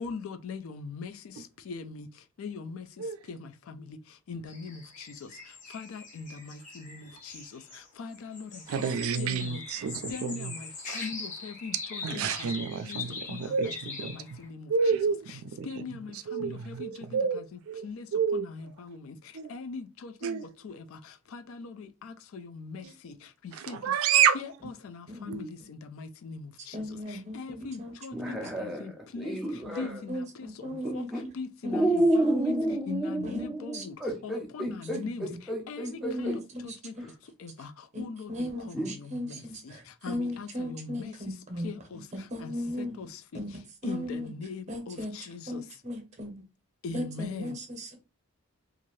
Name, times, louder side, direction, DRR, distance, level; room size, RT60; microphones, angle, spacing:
voice 1, 0.0-8.9 9.2-9.6 10.1-15.0 15.3-15.4 15.6-24.0 24.3-37.0 37.2-42.5 42.8-45.8 46.8-47.6, left 4 dB, 70° left, 0.4 m, -42 dB
sound 1, 4.5-7.9 8.1-14.5, left 4 dB, 35° left, 0.8 m, -42 dB
voice 2, 8.7-10.5 10.9-11.0 12.0-14.1 14.7-15.8 16.3-17.8 18.1-18.5 19.3-19.5 20.2-20.5 22.8-22.9 23.5-24.4 25.3-25.5, right 6 dB, 70° right, 0.3 m, -29 dB
voice 3, 25.1-25.4 26.7-28.4 29.6-31.3 31.6-31.9 32.2-32.8 33.2-33.5 33.7-33.8 36.0-37.0 37.9-41.7 42.3-42.9 43.3-43.5 43.8-44.3 44.7-45.1 45.5-46.3 46.9-47.9, equal, 30° right, 0.7 m, -36 dB
sound 2, 28.1-30.0 30.8-31.2 31.7-36.4 37.0-37.1 38.7-38.9, right 1 dB, ahead, 0.4 m, -29 dB
2.7 x 2.4 x 3.1 m
head